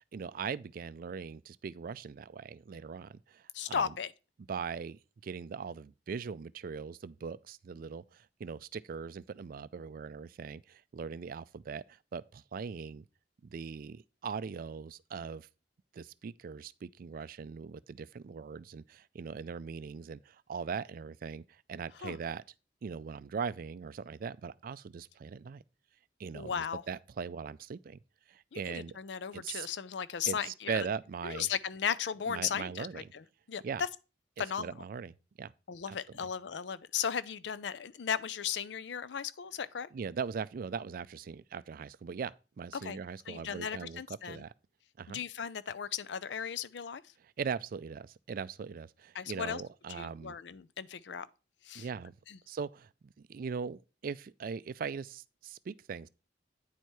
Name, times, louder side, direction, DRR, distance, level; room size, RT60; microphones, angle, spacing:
voice 1, 0.0-3.9 4.5-13.0 13.4-15.5 15.9-22.4 22.8-25.6 26.2-28.0 28.3-29.0 29.3-29.7 30.3-31.5 32.3-33.1 33.6-33.8 34.4-35.5 35.9-36.3 39.9-44.5 45.0-45.2 47.2-50.4 51.7-52.1 52.5-56.1, right 6 dB, 55° right, 0.4 m, -40 dB
voice 2, 3.5-4.1 22.0-22.2 26.3-26.8 28.5-30.8 31.2-32.9 33.5-33.6 34.4-34.7 35.7-39.9 42.8-43.0 43.3-44.4 45.1-47.0 49.1-49.6 50.0-51.3 51.7-51.9 52.3-52.4, left 7 dB, 75° left, 0.5 m, -36 dB
9.2 x 4.7 x 4.5 m
head